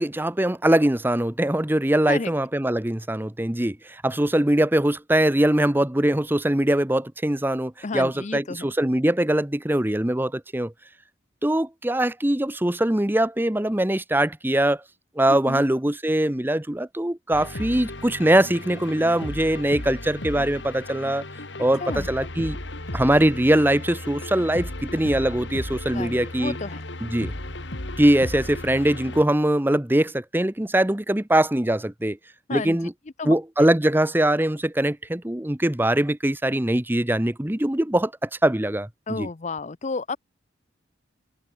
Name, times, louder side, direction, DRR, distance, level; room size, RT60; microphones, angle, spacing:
voice 1, 0.0-10.7 11.4-14.8 15.2-21.2 21.6-22.6 22.9-26.5 27.0-27.3 28.0-32.2 32.5-32.9 33.2-39.3, right 1 dB, 10° right, 0.8 m, -22 dB
voice 2, 7.8-8.7 15.3-15.6 21.8-22.1 25.9-26.8 32.5-32.8 33.2-33.3 33.6-33.7 39.1-40.2, left 3 dB, 35° left, 0.6 m, -31 dB
sound 1, 17.3-29.2, left 1 dB, 65° left, 3.2 m, -35 dB
head